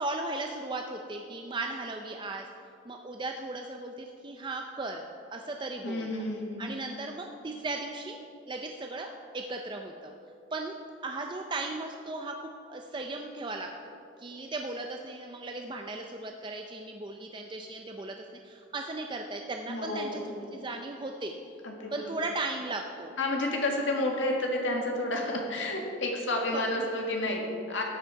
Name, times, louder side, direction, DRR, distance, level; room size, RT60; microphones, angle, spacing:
voice 1, 0.0-2.5 2.8-5.0 5.3-6.1 6.6-8.2 8.5-10.1 10.5-10.7 11.0-18.2 18.4-20.2 20.5-21.3 21.9-23.1 26.5-26.7, right 2 dB, 25° right, 3 dB, 0.4 m, -36 dB
voice 2, 5.8-6.5 19.7-20.3 21.6-22.0 23.2-27.8, left 1 dB, 75° left, 1 dB, 1.7 m, -30 dB
13.0 x 8.4 x 4.6 m, 2.6 s
head